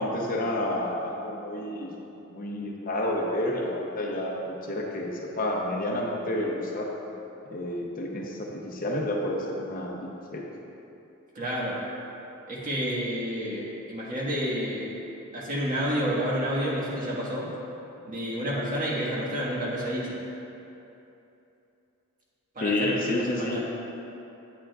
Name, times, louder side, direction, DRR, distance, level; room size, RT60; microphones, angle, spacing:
voice 1, 0.0-1.9 2.3-6.9 7.5-10.5 22.6-23.6, left 1 dB, 40° left, -1 dB, 0.7 m, -30 dB
voice 2, 11.3-11.8 12.5-14.9 15.3-17.5 18.0-20.1 22.5-23.6, equal, 40° right, -6 dB, 1.5 m, -29 dB
9.0 x 8.9 x 2.3 m, 2.9 s
head